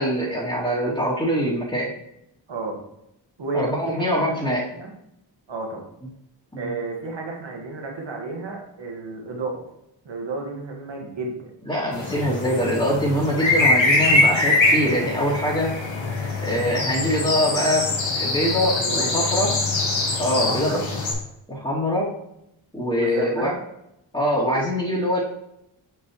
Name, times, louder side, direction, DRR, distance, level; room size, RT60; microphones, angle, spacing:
voice 1, 0.0-1.9 3.5-4.6 6.5-6.6 11.7-15.7 16.4-17.9 18.1-19.5 20.2-20.8 21.5-22.1 22.7-23.5 24.1-25.2, equal, 10° left, -10 dB, 2.6 m, -23 dB
voice 2, 3.4-4.9 5.5-5.8 6.6-9.7 10.0-11.5 18.7-19.6 20.3-20.9 22.9-23.6, right 3 dB, 75° right, 1 dB, 1.8 m, -32 dB
sound 1, 11.9-21.1, left 2 dB, 80° left, 1.7 m, -23 dB
7.4 x 5.9 x 3.1 m, 0.82 s
cardioid pair, 45°, 45 cm